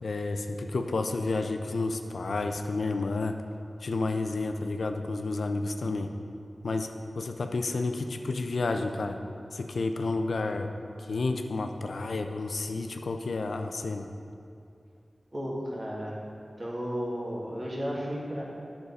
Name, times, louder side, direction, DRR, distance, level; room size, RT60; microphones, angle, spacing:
voice 1, 0.0-3.3 3.8-6.1 6.6-6.9 7.1-9.2 9.5-10.7 11.1-14.1, left 3 dB, 90° left, 5 dB, 0.5 m, -30 dB
voice 2, 15.3-16.2 16.6-18.4, equal, 45° right, -5 dB, 2.0 m, -33 dB
9.6 x 6.5 x 4.1 m, 2.4 s
wide cardioid pair, 65°, 0 cm